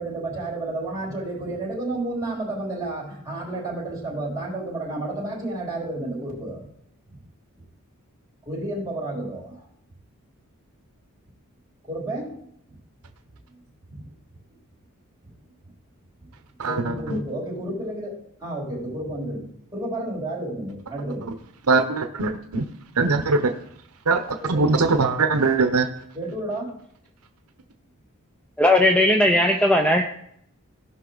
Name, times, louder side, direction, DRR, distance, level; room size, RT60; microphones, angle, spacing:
voice 1, 0.0-6.7 8.5-9.6 11.8-12.4 13.9-14.0 16.6-19.5 19.7-21.3 24.4-24.7 26.1-26.8, right 1 dB, 15° right, -6 dB, 4.0 m, -31 dB
voice 2, 16.6-17.2 21.7-22.7 23.0-23.6 24.1-24.2 24.5-25.9, right 3 dB, 85° right, 7 dB, 0.8 m, -21 dB
voice 3, 28.6-30.0, left 1 dB, 5° left, 3 dB, 0.5 m, -17 dB
17.0 x 5.7 x 4.0 m, 0.71 s
head